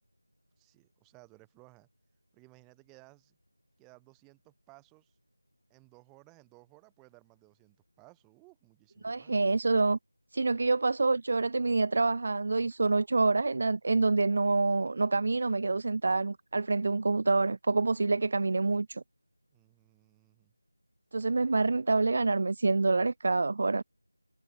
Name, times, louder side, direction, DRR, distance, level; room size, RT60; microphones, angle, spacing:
voice 1, 0.6-1.9 2.3-3.4 3.8-5.2 5.7-9.4 19.5-20.5 21.4-21.7, right 27 dB, 5° right, 1.7 m, -59 dB
voice 2, 9.0-10.0 10.3-19.0 21.1-23.8, right 3 dB, 25° right, 0.4 m, -27 dB
figure-of-eight pair, 180°, 0 cm